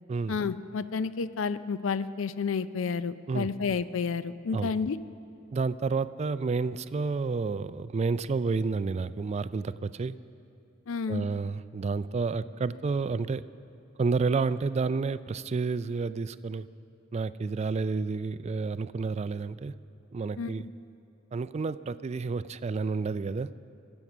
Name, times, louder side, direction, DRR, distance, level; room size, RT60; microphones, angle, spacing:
voice 1, 0.3-5.0 10.9-11.2 20.4-20.5, left 5 dB, 70° left, 14 dB, 0.5 m, -30 dB
voice 2, 5.5-10.2 11.1-13.4 14.0-16.7 17.1-19.7 20.1-20.7 21.3-23.5, right 4 dB, 30° right, 15 dB, 0.3 m, -30 dB
23.0 x 8.0 x 6.0 m, 2.6 s
head